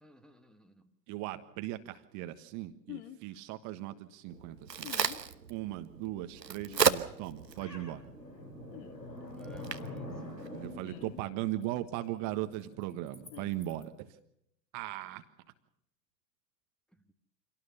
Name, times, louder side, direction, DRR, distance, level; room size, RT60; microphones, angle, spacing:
voice 1, 0.0-0.9 9.2-10.2 16.9-17.1, right 1 dB, ahead, 3 dB, 1.6 m, -57 dB
voice 2, 1.1-4.9 5.5-8.1 10.5-14.1 14.7-15.2, right 15 dB, 35° right, 10 dB, 1.5 m, -38 dB
sound 1, 2.9-3.2 4.8-5.2 6.7-6.9 8.7-8.9 10.8-11.2 13.3-13.5, left 14 dB, 40° left, 1.9 m, -46 dB
Crack, 4.3-11.2, right 6 dB, 85° right, 1.2 m, -36 dB
sound 2, 6.8-13.8, left 1 dB, 85° left, 4.0 m, -47 dB
26.0 x 18.0 x 6.9 m, 0.75 s
figure-of-eight pair, 95°, 49 cm